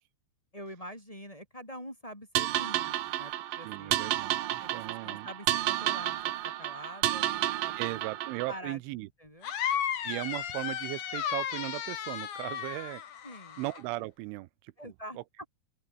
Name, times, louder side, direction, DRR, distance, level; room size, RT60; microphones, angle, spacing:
voice 1, 0.5-4.1 4.6-8.2 8.5-8.8 9.2-9.5 13.2-13.6 14.8-15.2, equal, 5° left, 5.3 m, -46 dB
sound 1, 2.4-8.6, right 14 dB, 70° right, 2.3 m, -31 dB
voice 2, 3.6-5.3 7.8-9.1 10.0-13.0 13.6-14.5 14.8-14.9, right 20 dB, 85° right, 3.2 m, -37 dB
sound 2, 9.4-13.8, left 9 dB, 50° left, 3.0 m, -34 dB
open air
omnidirectional pair, 5.5 m